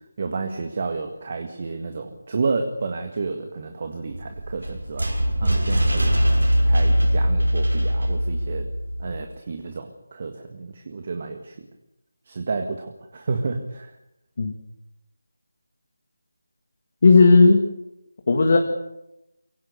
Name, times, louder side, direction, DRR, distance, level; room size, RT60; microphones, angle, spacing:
voice 1, 0.2-5.1 5.4-6.2 6.6-8.7 9.0-11.6 12.3-13.9, right 4 dB, 40° right, 5 dB, 1.8 m, -30 dB
sound 1, 4.1-9.2, equal, 80° right, 5.8 m, -21 dB
voice 2, 17.0-17.7 18.3-18.6, left 3 dB, 45° left, 3 dB, 1.9 m, -14 dB
23.5 x 17.0 x 6.9 m, 0.90 s
figure-of-eight pair, 160°, 0 cm